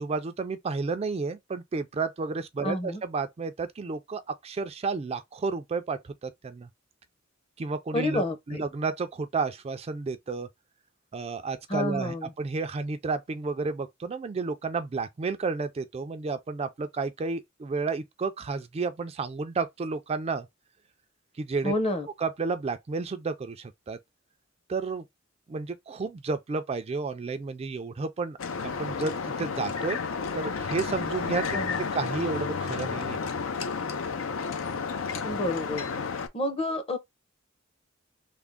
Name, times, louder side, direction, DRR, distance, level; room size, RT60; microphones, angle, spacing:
voice 1, 0.0-6.7 7.6-10.5 11.1-20.5 21.4-21.7 22.2-24.0 24.7-25.0 25.5-28.4 28.6-30.0 30.3-31.6 31.9-33.2, right 4 dB, 30° right, 0.3 m, -31 dB
voice 2, 2.6-3.0 7.9-8.6 11.7-12.3 21.6-22.1 31.5-31.8 35.2-35.8 36.3-37.0, left 1 dB, 30° left, 0.7 m, -29 dB
sound 1, 28.4-36.3, left 5 dB, 85° left, 0.5 m, -31 dB
3.5 x 2.0 x 3.5 m
head